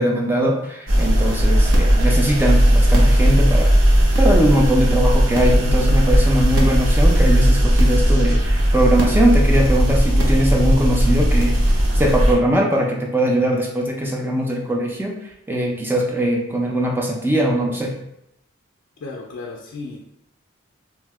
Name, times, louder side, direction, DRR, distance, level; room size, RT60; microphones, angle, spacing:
voice 1, 0.0-3.7 4.2-11.6 11.9-15.2 15.5-18.0, right 1 dB, 10° right, 0 dB, 0.3 m, -20 dB
sound 1, 0.9-12.3, equal, 85° right, 0.6 m, -16 dB
voice 2, 19.0-20.0, left 3 dB, 75° left, -1 dB, 0.4 m, -34 dB
2.7 x 2.0 x 3.4 m, 0.81 s
head